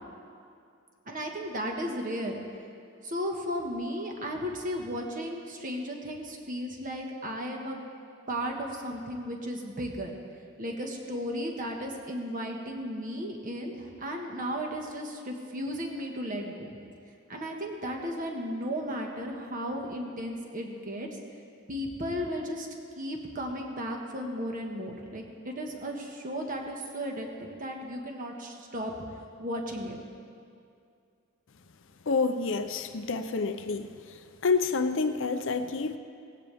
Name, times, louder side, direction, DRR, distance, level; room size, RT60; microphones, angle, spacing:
voice 1, 1.0-2.4 3.0-7.8 8.3-10.1 10.6-16.7 17.3-21.1 21.7-22.7 22.9-28.9 29.4-30.0, equal, 40° right, 1 dB, 1.6 m, -35 dB
voice 2, 32.1-33.9 34.4-36.0, left 4 dB, 60° left, 9 dB, 0.6 m, -28 dB
18.5 x 16.0 x 3.5 m, 2.4 s
head